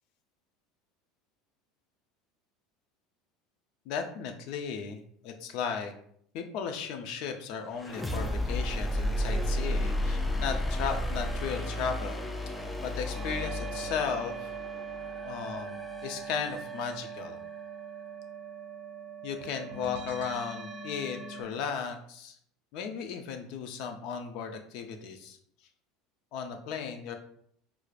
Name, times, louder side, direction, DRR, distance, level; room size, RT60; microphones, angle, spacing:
voice 1, 3.9-5.9 6.3-12.2 12.8-14.5 15.2-17.4 19.2-22.4 22.7-25.4 26.3-27.1, left 6 dB, 65° left, 5 dB, 0.5 m, -35 dB
sound 1, 7.7-17.5, left 1 dB, 5° left, 0.3 m, -33 dB
sound 2, 11.1-21.4, right 6 dB, 85° right, 0.5 m, -42 dB
4.6 x 2.0 x 2.4 m, 0.65 s
supercardioid pair, 120°, 0 cm